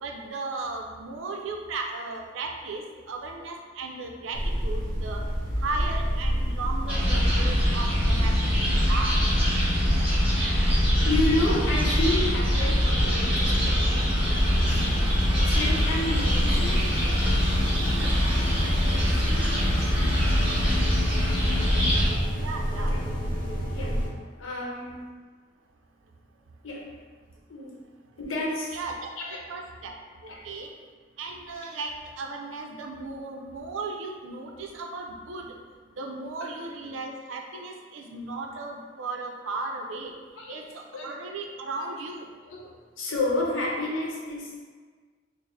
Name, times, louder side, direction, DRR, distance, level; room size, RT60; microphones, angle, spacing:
voice 1, 0.0-5.2 5.6-9.2 22.3-23.0 28.7-29.1 29.5-29.9 30.2-30.7 31.2-35.5 36.0-40.1 40.5-42.3, right 3 dB, 80° right, 2 dB, 0.5 m, -36 dB
sound 1, 4.3-24.1, equal, 45° left, 0.8 m, -28 dB
sound 2, 6.9-22.1, equal, 10° right, 1.2 m, -24 dB
voice 2, 11.0-14.7 15.3-17.5 18.6-19.6 22.7-23.3 23.7-24.0 24.4-25.0 26.6-26.9 27.5-27.7 28.2-28.8 29.2-29.4 30.3-30.5 40.4-40.6 40.9-41.1 42.5-42.6 43.0-44.5, left 2 dB, 90° left, -2 dB, 0.8 m, -31 dB
4.5 x 2.0 x 3.2 m, 1.5 s
head